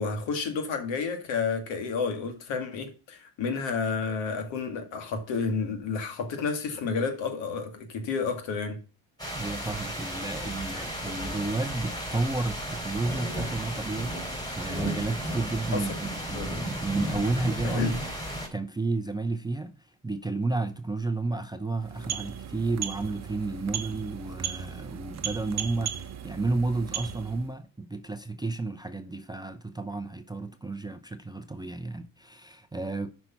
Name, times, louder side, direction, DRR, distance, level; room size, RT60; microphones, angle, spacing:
voice 1, 0.0-8.8 15.7-15.9 16.3-16.5 17.6-17.9, left 5 dB, 70° left, 2.2 m, -30 dB
sound 1, 9.2-18.5, equal, 10° left, 3.6 m, -34 dB
voice 2, 9.3-18.0 18.5-19.7 20.0-33.1, right 3 dB, 10° right, 0.5 m, -32 dB
sound 2, 21.7-27.5, right 8 dB, 35° right, 0.9 m, -36 dB
7.8 x 5.4 x 5.8 m
supercardioid pair, 90°, 47 cm